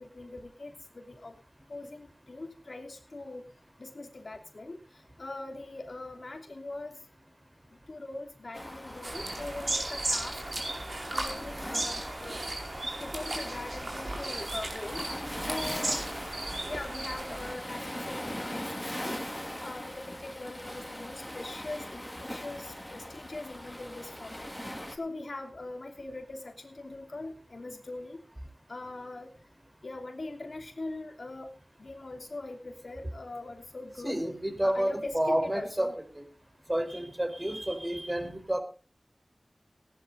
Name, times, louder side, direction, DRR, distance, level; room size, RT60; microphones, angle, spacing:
voice 1, 0.0-1.4 1.7-3.4 3.8-7.0 7.7-10.4 11.1-12.4 13.0-15.1 15.4-16.0 16.6-19.2 19.6-24.5 24.9-28.2 28.7-29.3 29.8-31.5 31.8-34.2 34.6-35.9, left 2 dB, 75° left, 4 dB, 2.9 m, -41 dB
Waves surf, 8.5-25.0, equal, 10° left, 3.3 m, -41 dB
sound 1, 9.0-17.5, right 2 dB, 60° right, 4.9 m, -35 dB
voice 2, 34.0-36.2 36.7-38.6, right 1 dB, 25° right, 6 dB, 4.5 m, -30 dB
18.0 x 11.5 x 4.0 m, 0.36 s
wide cardioid pair, 45°, 0 cm